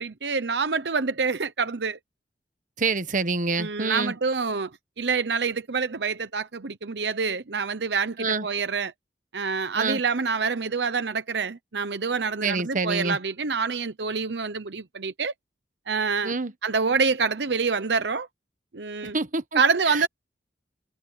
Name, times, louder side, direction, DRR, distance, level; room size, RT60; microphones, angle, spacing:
voice 1, 0.0-2.0 3.6-4.7 5.0-8.9 9.3-15.3 15.9-16.3 16.6-18.3 18.7-19.2 19.5-20.1, right 5 dB, 75° right, 0.9 m, -26 dB
voice 2, 2.8-4.1 8.2-8.4 9.8-10.0 12.4-13.2 16.2-16.5 19.1-19.6 19.9-20.0, right 3 dB, 50° right, 1.3 m, -26 dB
head